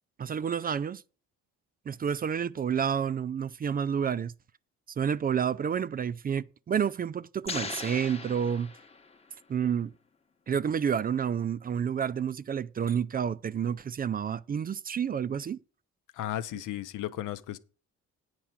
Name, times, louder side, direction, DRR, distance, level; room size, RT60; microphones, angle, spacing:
voice 1, 0.2-1.0 1.9-4.3 5.0-8.7 9.5-9.9 10.5-15.6, right 7 dB, 30° right, 0.3 m, -29 dB
sound 1, 7.5-9.3, left 3 dB, 20° left, 0.9 m, -39 dB
voice 2, 16.1-17.6, left 12 dB, 85° left, 0.7 m, -34 dB
8.8 x 4.7 x 7.2 m
cardioid pair, 90°, 30 cm